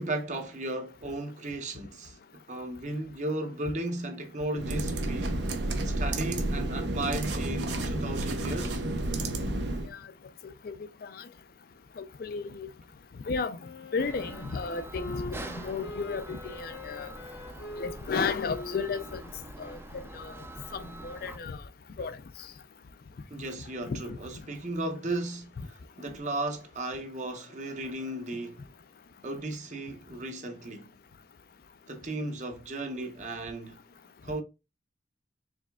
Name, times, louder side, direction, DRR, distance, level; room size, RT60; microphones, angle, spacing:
voice 1, 0.0-2.2 2.5-5.4 5.8-8.8 23.3-28.6 29.2-30.9 31.9-33.8 34.2-34.4, right 2 dB, 40° right, 0.8 m, -35 dB
sound 1, 4.5-9.9, right 1 dB, 80° right, 0.7 m, -31 dB
voice 2, 12.0-12.7 13.3-13.6 13.9-17.1 17.8-19.2 19.6-19.8 20.1-20.3 20.7-21.6 22.0-22.2 23.9-24.0, left 5 dB, 55° left, 0.4 m, -33 dB
Wind instrument woodwind instrument, 13.6-20.4, left 2 dB, 75° left, 0.9 m, -43 dB
sound 2, 14.0-21.4, right 1 dB, 15° right, 0.4 m, -45 dB
4.9 x 3.3 x 2.3 m
head